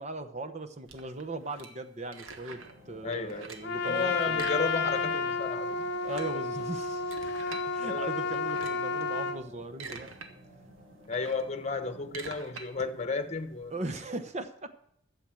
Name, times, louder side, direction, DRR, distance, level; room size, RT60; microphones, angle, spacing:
voice 1, 0.0-2.6 2.9-4.5 6.0-7.1 7.6-10.1 13.7-14.7, right 2 dB, 35° right, 0.9 m, -38 dB
sound 1, 0.9-2.8 3.1-3.8 4.3-5.2 5.5-5.6 5.9-7.7 8.3-8.9 9.5-10.3 10.7-14.0, right 4 dB, 85° right, 1.4 m, -46 dB
sound 2, 2.4-12.4, equal, 60° right, 5.6 m, -55 dB
voice 2, 3.0-3.5 3.8-5.9 7.8-8.1 11.1-13.8, left 4 dB, 35° left, 1.0 m, -33 dB
Trumpet, 3.6-9.4, left 4 dB, 55° left, 0.7 m, -31 dB
12.0 x 7.4 x 7.6 m
head